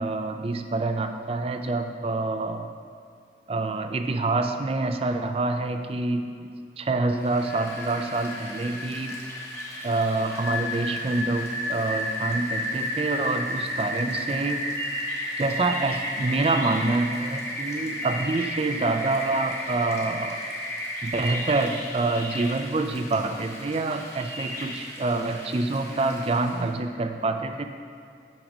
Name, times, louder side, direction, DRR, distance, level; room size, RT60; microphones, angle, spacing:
voice 1, 0.0-2.7 3.5-9.2 9.8-14.7 15.4-20.4 21.0-27.6, right 3 dB, 35° right, 7 dB, 0.4 m, -27 dB
Rain, 7.2-26.7, left 1 dB, 15° left, 0.9 m, -33 dB
6.4 x 6.0 x 5.0 m, 2.4 s
head